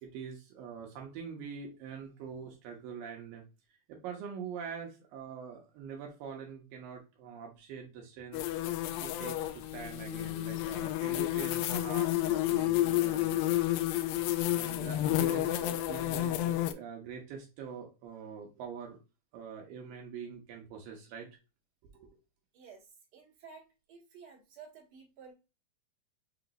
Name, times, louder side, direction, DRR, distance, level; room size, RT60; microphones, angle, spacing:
voice 1, 0.0-3.4 3.9-8.4 9.0-13.5 14.5-19.0 19.3-21.3 21.8-22.1, right 7 dB, 85° right, 1 dB, 2.6 m, -44 dB
sound 1, 8.3-16.7, left 14 dB, 85° left, 2.3 m, -30 dB
voice 2, 22.5-22.9 23.1-23.6 23.9-25.3, right 6 dB, 50° right, -3 dB, 2.8 m, -52 dB
7.0 x 3.0 x 2.6 m, 0.29 s
omnidirectional pair, 4.0 m